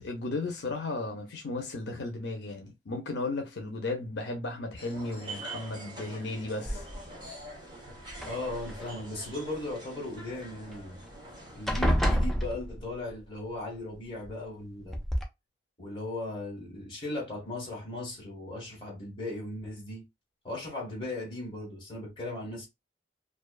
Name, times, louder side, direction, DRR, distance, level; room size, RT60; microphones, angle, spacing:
voice 1, 0.0-6.8, left 2 dB, 75° left, 0.5 m, -35 dB
sound 1, 4.8-11.7, right 1 dB, 25° right, 0.8 m, -45 dB
sound 2, 6.7-7.2 8.1-8.9 10.7-10.8 11.1-11.3 11.7-13.1 14.2-14.3 14.9-15.2, equal, ahead, 0.4 m, -29 dB
voice 2, 8.2-11.0 11.5-15.0 15.8-20.1 20.4-22.7, left 2 dB, 25° left, 1.2 m, -37 dB
2.5 x 2.2 x 2.2 m
head